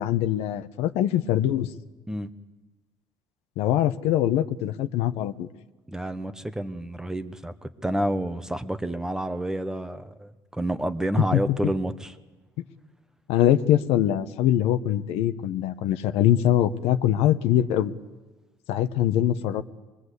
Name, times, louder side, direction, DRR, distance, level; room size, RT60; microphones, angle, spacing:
voice 1, 0.0-1.7 3.6-5.5 11.2-11.4 13.3-17.9 18.7-19.6, left 12 dB, 80° left, 10 dB, 1.0 m, -23 dB
voice 2, 5.9-12.1, right 1 dB, 5° right, 10 dB, 0.9 m, -29 dB
25.0 x 21.5 x 8.2 m, 1.2 s
cardioid pair, 155°, 10 cm